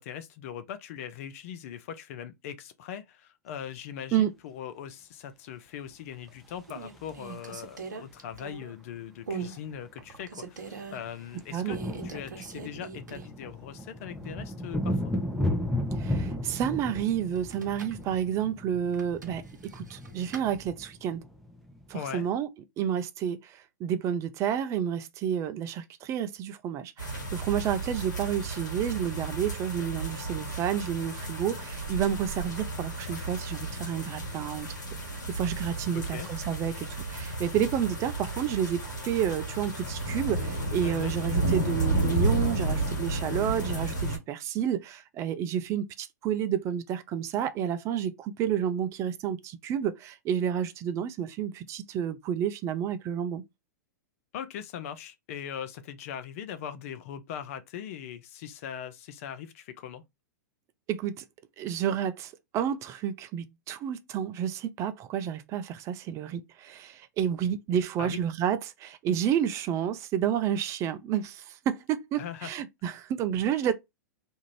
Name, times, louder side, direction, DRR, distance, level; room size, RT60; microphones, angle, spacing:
voice 1, 0.0-11.8 12.0-15.1 21.9-22.3 35.9-36.3 40.8-41.1 54.3-60.0 68.0-68.2 72.2-72.5, left 9 dB, 55° left, 0.5 m, -40 dB
sound 1, 5.9-6.3 6.7-8.8 9.3-9.6 10.0-11.0 11.7-13.5 13.8-13.9 17.4-18.0 18.9-20.5, right 5 dB, 85° right, 0.8 m, -41 dB
sound 2, 6.5-8.1 9.4-9.5 9.7-9.9 10.2-22.3, left 1 dB, ahead, 0.8 m, -35 dB
voice 2, 16.0-21.2 21.9-22.5 22.8-34.8 35.3-53.4 60.9-61.2 61.6-73.7, right 9 dB, 30° right, 0.4 m, -30 dB
sound 3, 27.0-44.2, right 2 dB, 85° left, 1.1 m, -32 dB
2.6 x 2.5 x 3.0 m
hypercardioid pair, 110°, 10 cm